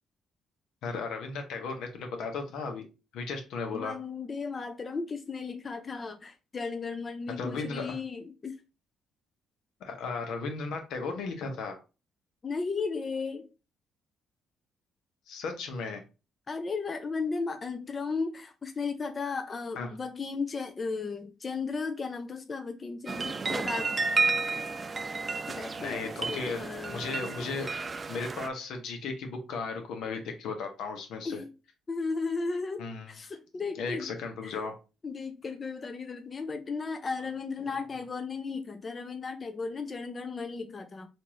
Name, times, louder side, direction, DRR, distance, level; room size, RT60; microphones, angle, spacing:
voice 1, 0.8-2.8 3.1-4.0 7.4-8.0 9.8-11.8 15.3-16.0 19.8-19.9 25.8-31.4 32.8-33.1 33.8-34.8, left 4 dB, 85° left, 1.0 m, -35 dB
voice 2, 3.7-8.6 12.4-13.5 16.5-23.9 25.5-26.0 26.3-27.5 31.2-31.5 31.9-34.1 34.4-34.6 35.0-41.1, left 4 dB, 35° left, 0.5 m, -35 dB
sound 1, 23.1-28.5, right 4 dB, 35° right, 0.4 m, -32 dB
4.4 x 2.6 x 3.0 m
cardioid pair, 90°, 0 cm